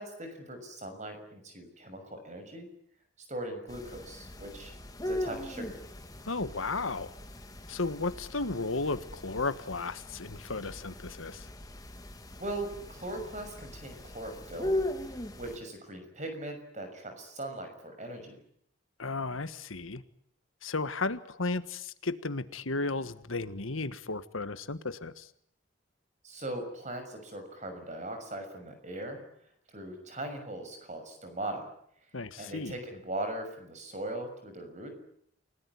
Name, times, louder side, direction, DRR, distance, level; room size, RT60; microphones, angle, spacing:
voice 1, 0.0-2.7 3.3-4.7 5.0-5.8 12.3-18.4 26.2-29.2 29.7-31.7 32.4-35.0, right 1 dB, 35° right, 7 dB, 6.4 m, -40 dB
sound 1, 3.7-15.6, left 1 dB, 20° left, 2.1 m, -39 dB
voice 2, 6.3-7.1 7.7-11.4 19.0-20.0 20.6-25.3 32.1-32.7, left 3 dB, 85° left, 12 dB, 1.5 m, -34 dB
29.0 x 18.5 x 9.6 m, 0.69 s
head